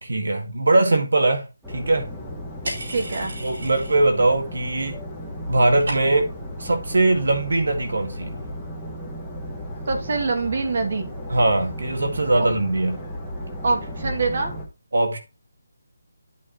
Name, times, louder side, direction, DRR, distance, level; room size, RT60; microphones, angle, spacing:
voice 1, 0.0-2.1 3.4-5.0 5.5-6.3 6.6-8.3 11.3-13.0 14.9-15.2, right 2 dB, 80° right, 1.9 m, -21 dB
sound 1, 1.6-14.6, equal, ahead, 1.5 m, -35 dB
sound 2, 2.6-4.2 4.5-5.1 5.3-6.4, right 1 dB, 60° right, 4.5 m, -35 dB
voice 2, 2.9-3.4 9.9-11.1 12.4-12.5 13.6-14.5, right 3 dB, 45° right, 2.3 m, -24 dB
12.5 x 4.5 x 3.0 m
hypercardioid pair, 175°, 0 cm